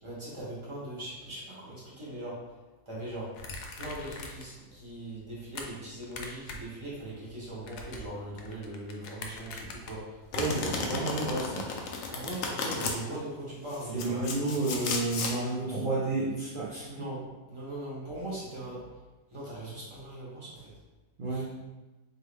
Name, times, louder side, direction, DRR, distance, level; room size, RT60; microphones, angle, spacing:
voice 1, 0.0-2.5 2.9-3.4 3.8-10.2 12.1-14.2 16.9-18.9 19.3-20.7 21.3-21.4, right 1 dB, 20° right, -7 dB, 1.2 m, -40 dB
sound 1, 3.4-4.6 4.9-5.7 6.0-6.7 7.0-10.4, left 3 dB, 85° left, 1.2 m, -43 dB
Domestic sounds home sounds, 10.3-13.0 13.7-15.4, left 4 dB, 65° left, 0.9 m, -33 dB
voice 2, 10.3-11.6 13.9-17.1 21.2-21.4, right 2 dB, 45° right, -8 dB, 0.8 m, -31 dB
4.0 x 3.1 x 3.3 m, 1.2 s
omnidirectional pair, 1.7 m